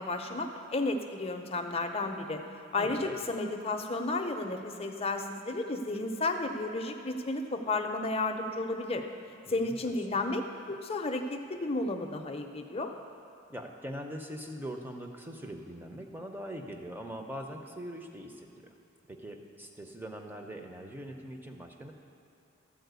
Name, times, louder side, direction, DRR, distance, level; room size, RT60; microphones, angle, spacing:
voice 1, 0.0-2.4 2.7-9.1 9.5-10.4 10.7-12.9, left 2 dB, 30° left, 4 dB, 0.6 m, -32 dB
voice 2, 2.8-3.2 9.5-10.2 13.5-18.5 19.1-21.9, equal, 10° right, 3 dB, 0.7 m, -42 dB
13.0 x 4.4 x 8.1 m, 2.6 s
head